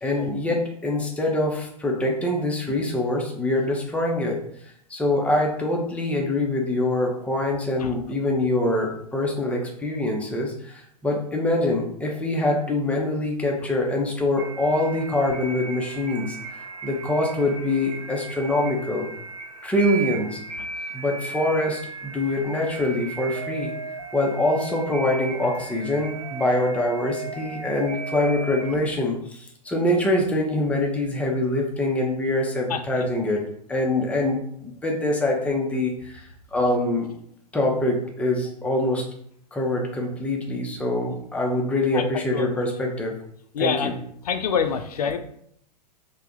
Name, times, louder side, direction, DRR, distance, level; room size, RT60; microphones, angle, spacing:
voice 1, 0.0-4.4 4.9-16.4 16.8-19.1 19.6-20.4 20.9-23.7 24.1-33.4 33.7-37.1 37.5-39.0 39.5-43.1 43.6-43.9, left 1 dB, 5° left, 0 dB, 0.6 m, -24 dB
sound 1, 14.4-28.7, right 4 dB, 70° right, 0.8 m, -36 dB
voice 2, 32.7-33.1 41.9-42.6 43.5-43.9 44.2-45.2, left 7 dB, 65° left, 8 dB, 0.5 m, -26 dB
3.3 x 2.2 x 3.7 m, 0.68 s
figure-of-eight pair, 100°, 21 cm